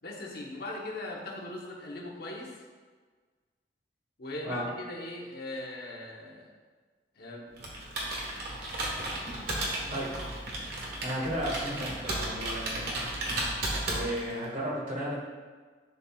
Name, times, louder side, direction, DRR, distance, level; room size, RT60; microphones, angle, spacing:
voice 1, 0.0-2.6 4.2-6.5 7.2-7.6, left 1 dB, 60° left, -1 dB, 1.1 m, -39 dB
Computer keyboard, 7.6-14.4, right 1 dB, 60° right, 1.5 m, -34 dB
voice 2, 11.0-12.9 13.8-15.1, equal, 45° right, -4 dB, 1.8 m, -34 dB
11.0 x 4.2 x 2.4 m, 1.5 s
head